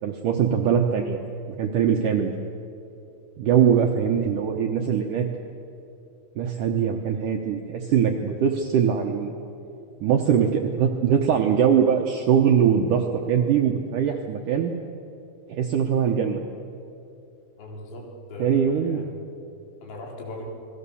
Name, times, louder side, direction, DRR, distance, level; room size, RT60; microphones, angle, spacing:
voice 1, 0.0-1.2 1.5-2.3 3.4-5.3 6.4-9.3 10.0-14.7 15.5-16.4 18.4-19.0, right 8 dB, 70° right, 2 dB, 2.0 m, -22 dB
voice 2, 17.6-19.2 19.8-20.5, left 1 dB, 80° left, -1 dB, 6.0 m, -39 dB
28.5 x 21.0 x 7.1 m, 2.7 s
omnidirectional pair, 5.1 m